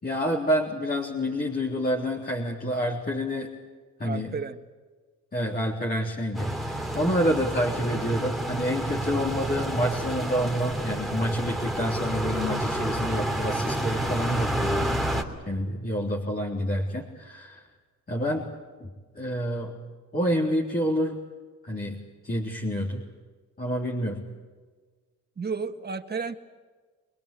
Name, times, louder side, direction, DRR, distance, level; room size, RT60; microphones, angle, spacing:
voice 1, 0.0-3.5 4.0-4.3 5.3-15.1 15.5-17.7 18.1-18.5 18.8-18.9 19.1-19.7 20.1-21.2 21.6-23.0 23.6-24.2, equal, 30° left, -3 dB, 3.8 m, -28 dB
voice 2, 4.0-4.6 25.4-26.4, right 5 dB, 35° right, 7 dB, 1.8 m, -32 dB
sound 1, 6.3-15.2, right 1 dB, ahead, 3.2 m, -29 dB
25.0 x 21.5 x 8.6 m, 1.4 s
cardioid pair, 90°, 30 cm